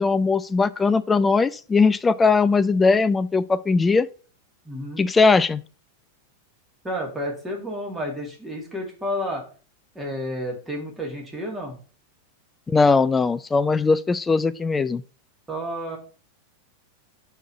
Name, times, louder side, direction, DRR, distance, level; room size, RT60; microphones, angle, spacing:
voice 1, 0.0-4.1 5.0-5.6 12.7-15.0, left 4 dB, 15° left, 0.3 m, -19 dB
voice 2, 4.6-5.0 6.8-9.4 9.9-11.8 15.5-16.0, equal, 10° right, 2.2 m, -31 dB
4.5 x 4.5 x 5.7 m
figure-of-eight pair, 90°, 0 cm